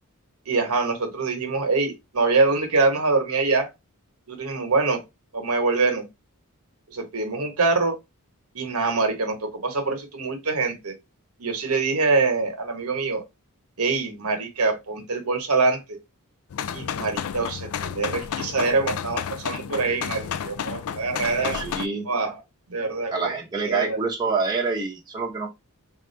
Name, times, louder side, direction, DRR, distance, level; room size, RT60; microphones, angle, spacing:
voice 1, 0.5-3.7 4.3-5.0 5.3-6.0 6.9-8.0 8.5-10.9 11.4-13.2 13.8-16.0 16.7-21.6 22.1-22.4 22.7-23.3 23.7-24.0, right 3 dB, 80° right, 1.1 m, -24 dB
sound 1, 16.5-21.9, left 8 dB, 70° left, 0.3 m, -31 dB
voice 2, 21.3-22.1 23.1-25.5, right 4 dB, 20° right, 0.9 m, -27 dB
3.6 x 2.5 x 4.4 m
head